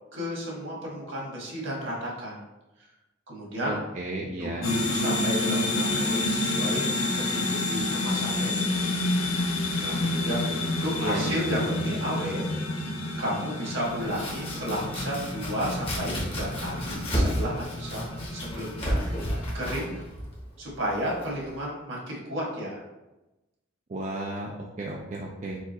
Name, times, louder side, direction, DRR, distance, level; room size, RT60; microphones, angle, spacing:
voice 1, 0.1-2.4 3.3-3.8 4.4-6.9 7.3-8.8 9.7-12.4 13.2-19.0 19.5-20.0 20.6-22.8, equal, 65° right, -3 dB, 1.5 m, -33 dB
voice 2, 3.7-4.7 11.0-11.4 23.9-25.6, right 2 dB, 35° right, -2 dB, 0.4 m, -33 dB
sound 1, 4.6-20.0, left 2 dB, 80° left, 0.7 m, -29 dB
Domestic sounds home sounds, 13.8-21.5, equal, 25° left, 1.0 m, -32 dB
4.8 x 2.4 x 4.1 m, 1.0 s
head